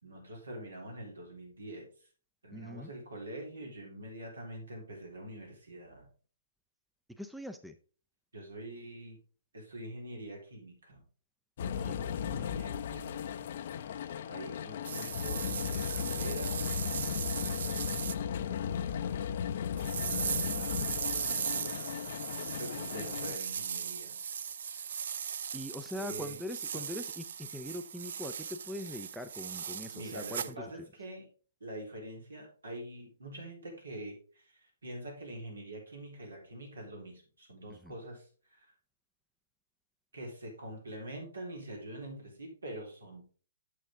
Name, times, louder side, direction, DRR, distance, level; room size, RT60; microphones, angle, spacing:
voice 1, 0.0-1.9 2.4-6.1 8.3-9.2 9.5-11.0 12.1-13.5 13.8-16.6 17.1-21.1 21.5-22.0 22.6-24.2 26.0-26.4 26.7-26.8 29.9-31.3 31.6-38.7 40.1-43.2, right 1 dB, 80° right, 0 dB, 3.9 m, -45 dB
voice 2, 2.5-2.9 7.1-7.8 25.5-30.4 37.7-37.9, left 1 dB, ahead, 9 dB, 0.5 m, -42 dB
sound 1, 11.6-23.4, left 8 dB, 50° left, 0.6 m, -36 dB
sound 2, 14.8-18.2 19.8-30.5, right 7 dB, 60° right, 0.4 m, -38 dB
8.9 x 6.8 x 3.6 m, 0.40 s
figure-of-eight pair, 135°, 0 cm